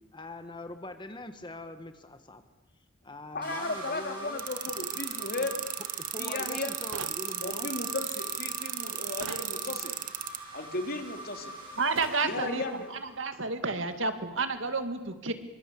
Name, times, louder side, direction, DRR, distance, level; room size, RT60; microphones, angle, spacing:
voice 1, 0.1-2.4 3.0-4.4 6.0-7.7, left 2 dB, 20° left, 8 dB, 1.4 m, -43 dB
voice 2, 3.3-5.6 6.2-6.7 7.4-10.0 10.5-11.6 12.2-12.9, left 2 dB, 45° left, 5 dB, 3.2 m, -35 dB
sound 1, 3.4-13.4, right 1 dB, 25° right, 8.0 m, -44 dB
sound 2, 4.4-10.4, right 12 dB, 40° right, 1.3 m, -34 dB
sound 3, 6.9-7.2 9.2-9.5 12.0-12.2, right 5 dB, 85° right, 1.0 m, -40 dB
voice 3, 11.8-12.6 12.9-15.3, right 3 dB, 70° right, 8 dB, 2.3 m, -30 dB
26.0 x 24.0 x 8.5 m, 1.1 s
head